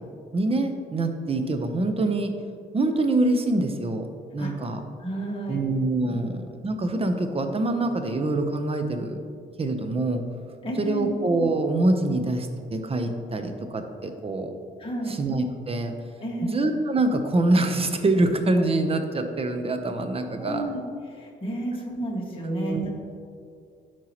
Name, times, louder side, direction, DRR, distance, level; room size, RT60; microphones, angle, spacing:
voice 1, 0.3-2.3 2.7-4.8 5.5-9.2 9.6-10.2 10.8-14.6 15.1-15.9 16.5-20.6 22.4-22.9, right 2 dB, 30° right, 6 dB, 0.8 m, -25 dB
voice 2, 5.0-5.6 6.1-6.2 10.6-11.1 14.8-15.2 16.2-16.6 20.4-20.8 21.1-22.9, right 1 dB, 25° left, -3 dB, 1.9 m, -31 dB
12.0 x 4.6 x 3.0 m, 2.3 s
cardioid pair, 90°, 20 cm